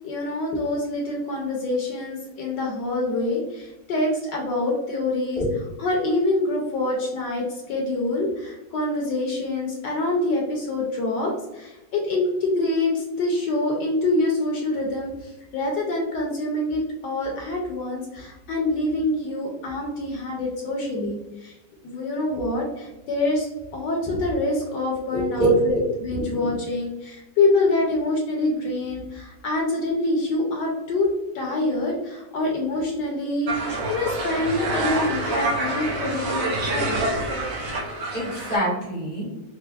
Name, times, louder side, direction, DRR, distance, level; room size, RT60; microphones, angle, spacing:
voice 1, 0.0-5.4 5.8-21.6 21.8-25.7 26.0-31.1 31.3-37.2, left 2 dB, 70° left, -1 dB, 1.1 m, -26 dB
voice 2, 25.1-25.9 38.1-39.3, right 2 dB, 20° right, -7 dB, 0.7 m, -23 dB
sound 1, 33.5-38.6, right 2 dB, 65° right, 0.8 m, -27 dB
4.3 x 2.0 x 2.2 m, 0.97 s
omnidirectional pair, 2.2 m